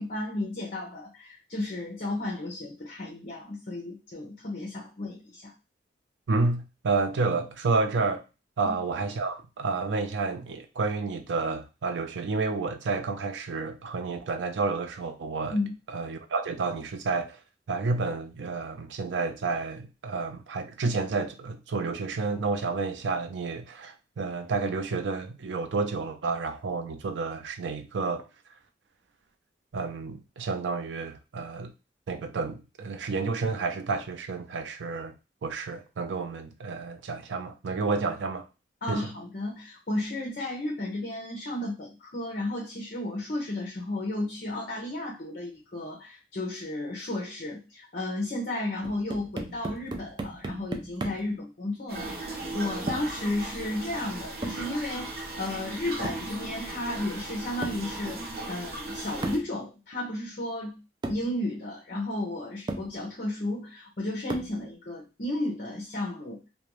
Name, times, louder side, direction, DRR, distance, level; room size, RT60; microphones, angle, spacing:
voice 1, 0.0-5.5 8.6-8.7 15.5-15.7 38.8-55.1 55.4-60.8 61.1-66.4, left 1 dB, 50° left, 0.6 m, -33 dB
voice 2, 6.3-8.2 8.6-15.5 15.9-17.4 17.7-28.3 29.7-31.7 32.1-35.1 35.4-38.5 38.9-39.1, right 4 dB, 90° right, 0.4 m, -30 dB
sound 1, 48.8-51.4 52.9-53.2 54.4-54.7 56.0-56.3 57.6-57.9 59.2-59.5 60.5-60.6 61.0-61.3 62.2-62.3 62.7-62.9 64.3-64.6, right 2 dB, 25° right, 0.3 m, -36 dB
sound 2, 51.9-59.4, right 2 dB, 55° right, 0.7 m, -37 dB
2.4 x 2.2 x 3.0 m
head